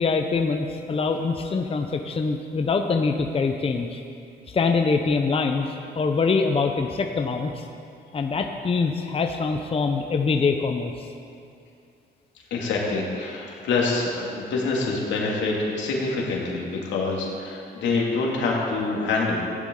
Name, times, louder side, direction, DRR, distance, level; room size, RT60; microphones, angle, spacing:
voice 1, 0.0-4.0 4.5-5.7 5.9-7.6 8.1-11.1, left 4 dB, 30° left, 4 dB, 0.8 m, -24 dB
voice 2, 12.5-19.4, left 3 dB, 85° left, -3 dB, 2.5 m, -26 dB
16.0 x 10.5 x 3.9 m, 2.5 s
cardioid pair, 95°, 18 cm